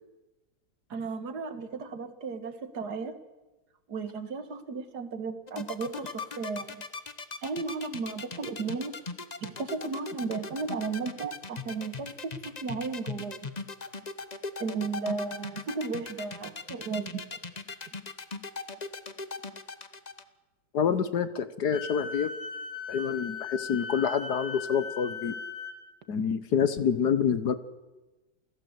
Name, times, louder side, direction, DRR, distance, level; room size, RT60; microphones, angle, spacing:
voice 1, 0.9-3.2 3.9-6.8 7.4-9.0 9.4-13.5 14.6-17.2, right 4 dB, 60° right, 10 dB, 2.3 m, -34 dB
sound 1, 5.5-20.2, left 4 dB, 30° left, 0.9 m, -38 dB
voice 2, 20.7-22.3 22.9-25.4 26.1-27.5, left 7 dB, 60° left, 13 dB, 1.6 m, -27 dB
Wind instrument woodwind instrument, 21.7-25.8, left 5 dB, 75° right, 4.0 m, -38 dB
29.0 x 17.0 x 8.2 m, 1.1 s
omnidirectional pair, 2.0 m